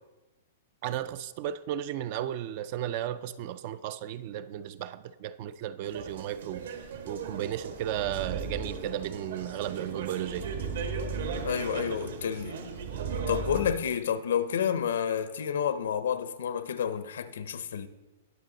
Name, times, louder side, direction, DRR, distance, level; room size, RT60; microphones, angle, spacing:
voice 1, 0.8-6.7 7.0-10.4, right 11 dB, 30° right, 0.3 m, -34 dB
sound 1, 5.8-13.6, right 5 dB, 60° right, 1.3 m, -39 dB
sound 2, 7.6-13.7, right 5 dB, 85° right, 1.6 m, -38 dB
voice 2, 11.4-12.6 13.3-17.9, left 8 dB, 75° left, 0.7 m, -30 dB
19.5 x 6.5 x 3.9 m
hypercardioid pair, 180°, 0 cm